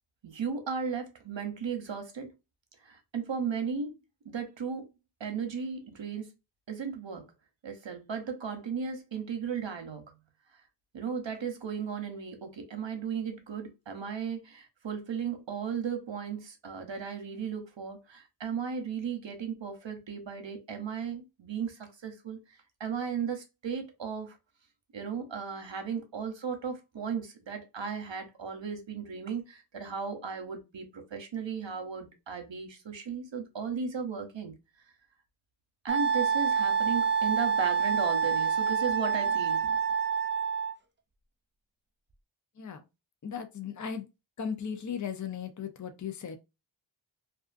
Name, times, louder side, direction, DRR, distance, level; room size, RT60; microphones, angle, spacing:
voice 1, 0.2-2.3 2.8-4.0 4.2-4.9 5.2-6.3 6.7-7.3 7.6-10.2 10.9-22.4 22.8-24.4 24.9-34.6 35.8-39.8, right 6 dB, 70° right, 0.7 m, -36 dB
Wind instrument woodwind instrument, 35.9-40.7, right 6 dB, 25° right, 0.3 m, -27 dB
voice 2, 43.2-44.1 44.4-46.4, left 7 dB, 40° left, 0.5 m, -36 dB
2.4 x 2.4 x 2.4 m
wide cardioid pair, 40°, 46 cm